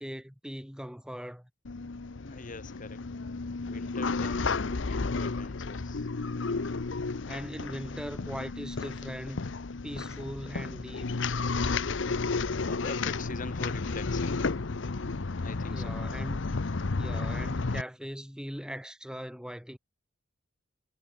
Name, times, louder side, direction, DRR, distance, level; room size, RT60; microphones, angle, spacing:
voice 1, 0.0-1.5 7.3-9.5 9.8-11.1 15.7-16.6 17.0-19.8, equal, 5° right, 2.8 m, -40 dB
sound 1, 1.6-17.8, left 4 dB, 70° left, 0.8 m, -32 dB
voice 2, 2.2-3.1 3.6-6.1 12.6-14.5 15.4-16.0, left 3 dB, 45° left, 1.3 m, -43 dB
head